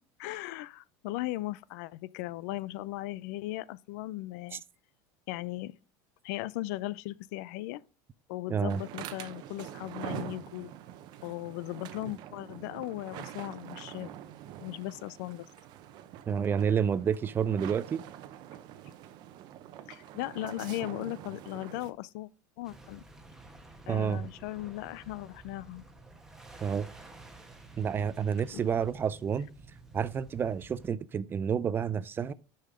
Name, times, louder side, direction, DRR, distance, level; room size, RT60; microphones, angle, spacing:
voice 1, 0.2-4.6 5.3-5.7 6.2-7.8 8.3-10.7 11.2-14.1 14.6-15.5 19.9-22.3 22.6-23.0 23.9-25.8 28.5-28.6, left 17 dB, 70° left, 0.4 m, -37 dB
voice 2, 8.5-8.8 16.3-18.0 23.9-24.3 26.6-26.9 27.8-29.5 29.9-32.3, right 7 dB, 25° right, 0.4 m, -29 dB
sound 1, 8.7-21.9, right 11 dB, 50° right, 0.7 m, -45 dB
sound 2, 22.6-30.9, right 2 dB, 5° right, 1.2 m, -52 dB
6.6 x 5.6 x 4.9 m
supercardioid pair, 125°, 9 cm